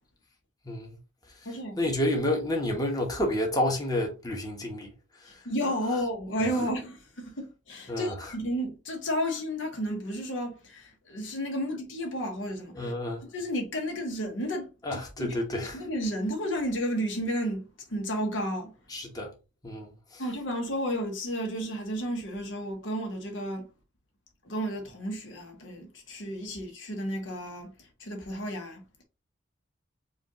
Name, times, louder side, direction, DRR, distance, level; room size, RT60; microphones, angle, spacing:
voice 1, 0.7-1.0 1.8-4.9 7.9-8.1 12.7-13.2 14.8-15.8 18.9-19.3 19.6-20.2, left 1 dB, 20° left, 1.0 m, -29 dB
voice 2, 1.4-1.8 5.4-12.9 13.2-15.3 15.7-17.6 17.9-18.7 20.2-23.7 24.4-27.7 28.0-28.8, equal, 80° left, 1.1 m, -32 dB
5.0 x 2.5 x 2.9 m
head